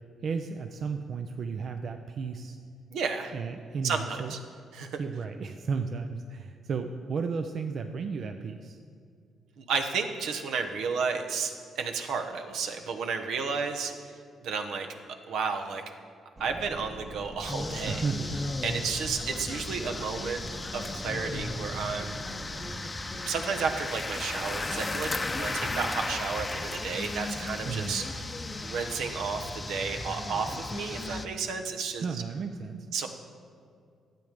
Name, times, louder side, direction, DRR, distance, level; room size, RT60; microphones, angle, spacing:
voice 1, 0.2-2.6 3.3-4.3 5.0-8.8 17.9-18.4 18.8-18.9 27.6-27.9 32.0-32.9, right 5 dB, 55° right, 6 dB, 0.5 m, -34 dB
voice 2, 2.9-3.3 3.8-4.4 4.7-5.0 9.6-14.9 15.3-15.8 16.4-18.0 18.6-20.4 20.7-22.2 23.1-28.2 28.6-32.2 32.9-33.1, right 5 dB, 80° right, 5 dB, 1.0 m, -32 dB
sound 1, 16.4-22.8, right 2 dB, 25° right, 1.1 m, -44 dB
sound 2, 17.4-31.3, left 2 dB, 20° left, 0.6 m, -35 dB
12.0 x 7.8 x 5.2 m, 2.3 s
cardioid pair, 90°, 0 cm